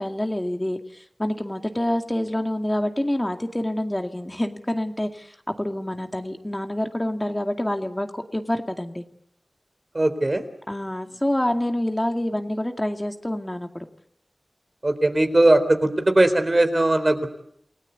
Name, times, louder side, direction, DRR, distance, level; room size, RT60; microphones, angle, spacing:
voice 1, 0.0-9.0 10.7-13.9, left 1 dB, 20° left, 5 dB, 2.2 m, -27 dB
voice 2, 9.9-10.4 14.8-17.4, right 1 dB, 40° right, 8 dB, 4.0 m, -19 dB
28.5 x 18.0 x 8.4 m, 0.69 s
cardioid pair, 45°, 0 cm